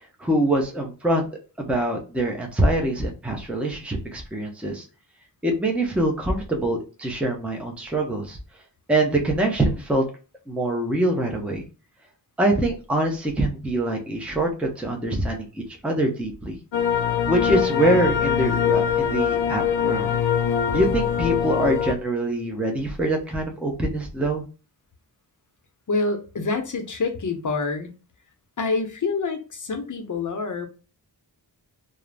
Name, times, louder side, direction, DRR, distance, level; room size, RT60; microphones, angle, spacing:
voice 1, 0.2-1.3 1.6-4.8 5.4-8.4 8.9-10.0 10.5-11.6 12.4-16.6 17.3-20.1 20.7-24.4, right 1 dB, 5° right, 1 dB, 0.6 m, -24 dB
sound 1, 16.7-21.9, left 8 dB, 80° left, 0.6 m, -23 dB
voice 2, 25.9-27.9 28.6-30.7, left 3 dB, 45° left, 5 dB, 0.6 m, -26 dB
2.4 x 2.0 x 3.2 m, 0.34 s
wide cardioid pair, 80°, 44 cm